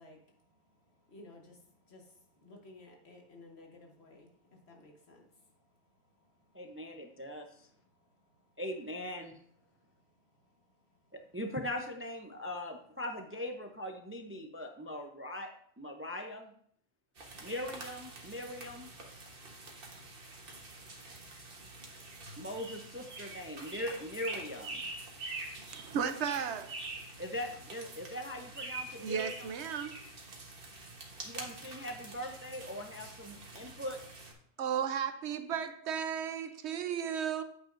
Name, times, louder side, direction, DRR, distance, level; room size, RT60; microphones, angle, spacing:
voice 1, 0.0-7.0 7.7-8.6 9.7-11.2, left 2 dB, 70° left, 1.7 m, -58 dB
voice 2, 6.5-7.7 8.6-9.4 11.1-16.5 17.4-18.9 22.4-24.8 27.2-29.5 31.2-34.0, left 1 dB, 15° right, 0.4 m, -41 dB
sound 1, 17.2-34.3, right 2 dB, 55° right, 1.4 m, -46 dB
voice 3, 25.7-26.7 29.0-30.0 34.6-37.4, right 7 dB, 80° right, 1.0 m, -34 dB
8.9 x 8.2 x 2.6 m
omnidirectional pair, 1.1 m